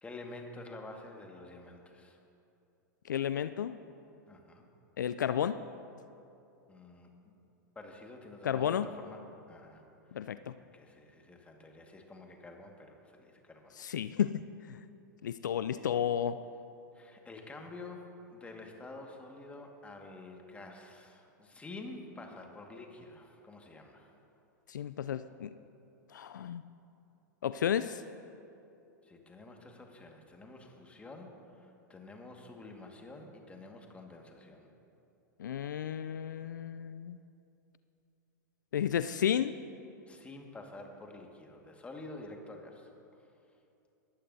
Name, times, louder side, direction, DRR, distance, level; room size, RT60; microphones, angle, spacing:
voice 1, 0.0-2.2 4.3-4.7 6.7-7.3 7.8-9.8 10.1-10.4 10.7-13.8 16.9-24.1 29.0-34.7 40.1-42.9 43.2-43.3, left 2 dB, 10° left, 2 dB, 1.8 m, -49 dB
voice 2, 3.1-3.7 5.0-5.6 8.4-8.9 10.1-10.5 13.8-14.8 15.2-16.4 24.7-25.5 26.1-26.6 27.4-28.0 35.4-37.2 38.7-39.5, left 9 dB, 75° left, 12 dB, 0.4 m, -32 dB
20.5 x 14.0 x 2.7 m, 2.7 s
figure-of-eight pair, 100°, 10 cm